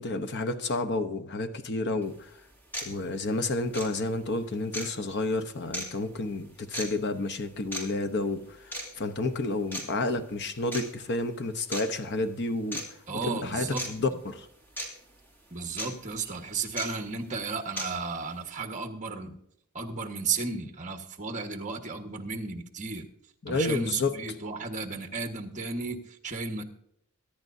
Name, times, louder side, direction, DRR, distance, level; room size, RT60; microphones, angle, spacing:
voice 1, 0.0-2.3 2.8-12.8 13.2-14.5 23.4-24.1, left 2 dB, 50° left, 0.9 m, -30 dB
sound 1, 2.0-2.1 2.7-2.9 3.7-3.9 4.7-4.9 5.7-5.9 6.7-6.9 7.7-7.8 8.7-8.9 9.7-9.8 10.7-10.8 11.7-11.8 12.7-12.8 13.8-13.9 14.8-14.9 15.8-15.9 16.8-16.9 17.8-17.9, equal, 10° left, 2.7 m, -34 dB
voice 2, 13.1-13.9 15.5-19.4 19.7-23.1 23.5-26.6, right 4 dB, 35° right, 1.4 m, -34 dB
23.0 x 10.5 x 2.7 m
head